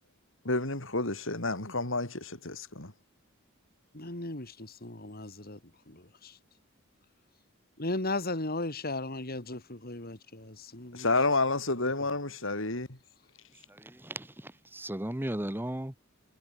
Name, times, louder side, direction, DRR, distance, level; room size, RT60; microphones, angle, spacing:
voice 1, 0.4-2.9 10.9-12.9, left 2 dB, 65° left, 5.1 m, -30 dB
voice 2, 3.9-5.6 5.9-6.4 7.8-11.1 11.8-11.9, left 2 dB, 45° left, 4.3 m, -36 dB
voice 3, 13.8-15.9, right 1 dB, 10° right, 1.1 m, -36 dB
head